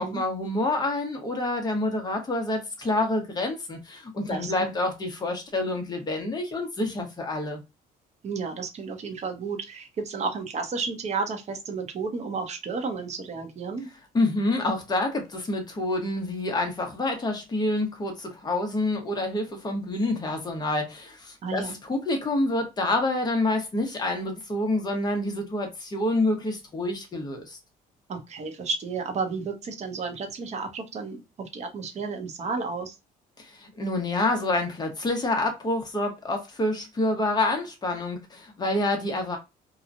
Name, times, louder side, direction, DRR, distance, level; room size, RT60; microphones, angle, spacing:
voice 1, 0.0-7.6 14.1-27.6 33.4-39.4, left 2 dB, 25° left, 1.0 m, -27 dB
voice 2, 4.3-4.7 8.2-13.9 21.4-21.8 28.1-32.9, right 4 dB, 40° right, 0.9 m, -32 dB
2.9 x 2.3 x 2.5 m
cardioid pair, 110°, 17 cm